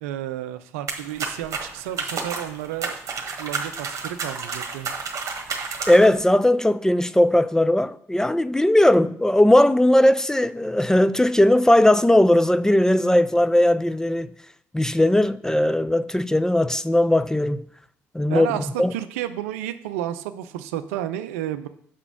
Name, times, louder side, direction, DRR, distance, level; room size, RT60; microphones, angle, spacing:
voice 1, 0.0-3.0 3.4-4.9 18.3-21.7, right 12 dB, 75° right, 0.4 m, -31 dB
sound 1, 0.9-6.2, right 5 dB, 45° right, 1.3 m, -31 dB
voice 2, 5.9-14.3 14.7-17.7 18.1-18.5 18.8-18.9, left 1 dB, 5° left, 0.3 m, -18 dB
6.4 x 3.9 x 5.8 m
figure-of-eight pair, 50°, 8 cm